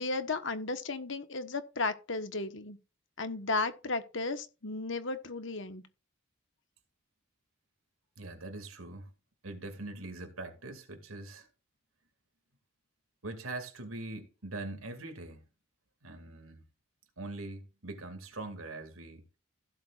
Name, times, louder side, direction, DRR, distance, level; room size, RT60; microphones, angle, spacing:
voice 1, 0.0-2.8 3.2-5.8, left 3 dB, 65° left, 1.4 m, -34 dB
voice 2, 8.2-9.1 9.4-11.5 13.2-15.4 16.0-16.7 17.2-19.3, right 2 dB, 90° right, 2.5 m, -42 dB
16.0 x 7.7 x 2.5 m
head